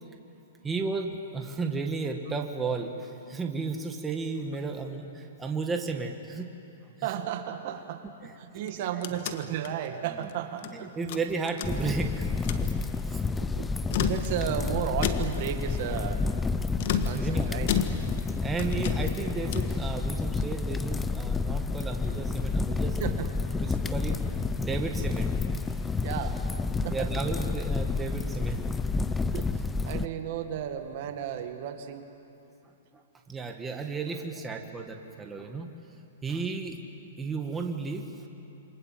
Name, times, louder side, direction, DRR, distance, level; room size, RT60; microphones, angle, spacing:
voice 1, 0.6-6.5 7.0-7.1 8.2-8.3 10.2-10.3 10.7-12.3 12.6-12.8 13.1-13.2 17.1-17.5 17.9-18.1 18.4-23.2 23.5-24.2 24.6-25.3 25.7-25.8 26.9-28.6 32.9-33.0 33.3-35.7 36.2-36.8 37.2-38.3, right 4 dB, 10° right, 3 dB, 1.9 m, -33 dB
voice 2, 7.0-10.9 11.8-11.9 12.6-12.7 13.4-13.7 14.0-16.2 17.0-17.7 23.0-23.3 26.0-26.4 26.8-27.1 29.3-32.0 34.2-34.7, right 10 dB, 50° right, 7 dB, 1.9 m, -34 dB
sound 1, 8.6-10.7 11.1-12.1 12.3-12.7 13.7-14.6 15.0-15.5 16.8-18.3 18.6-19.8, left 9 dB, 55° left, 1.6 m, -33 dB
sound 2, 11.6-30.1, left 4 dB, 10° left, 0.7 m, -30 dB
28.0 x 25.0 x 7.6 m, 2.9 s
hypercardioid pair, 135°, 0 cm